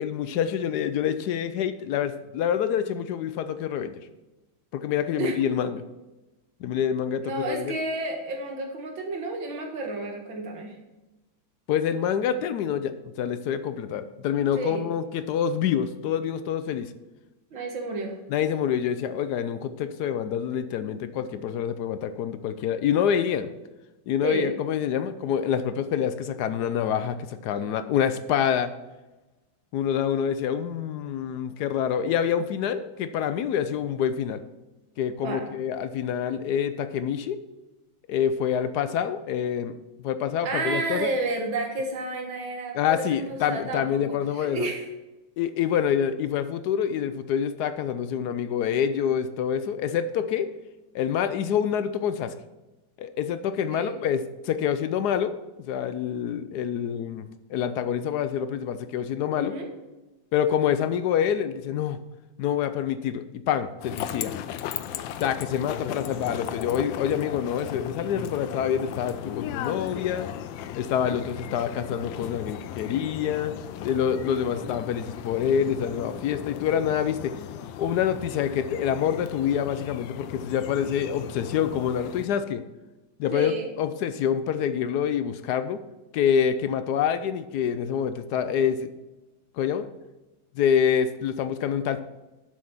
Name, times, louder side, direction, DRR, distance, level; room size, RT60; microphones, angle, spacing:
voice 1, 0.0-4.0 4.7-5.8 6.6-7.7 11.7-16.9 18.3-23.5 24.1-28.7 29.7-34.4 35.0-37.4 38.1-39.8 40.0-41.1 42.7-44.7 45.4-50.5 50.9-52.3 53.0-55.3 55.7-59.5 60.3-62.0 62.4-64.3 65.2-70.3 70.8-73.5 73.8-77.3 77.8-82.6 83.2-83.5 83.8-85.8 86.1-88.9 89.5-89.9 90.5-92.0, left 8 dB, 70° left, 11 dB, 1.0 m, -26 dB
voice 2, 7.2-10.8 14.5-14.9 17.5-18.2 24.2-24.5 35.2-35.4 40.4-44.0 44.3-44.9 53.7-54.0 59.3-59.7 83.3-83.7, right 3 dB, 90° right, 2 dB, 2.3 m, -31 dB
sound 1, 63.8-82.3, left 10 dB, 90° left, 1.3 m, -36 dB
7.8 x 6.3 x 5.7 m, 1.1 s
omnidirectional pair, 2.0 m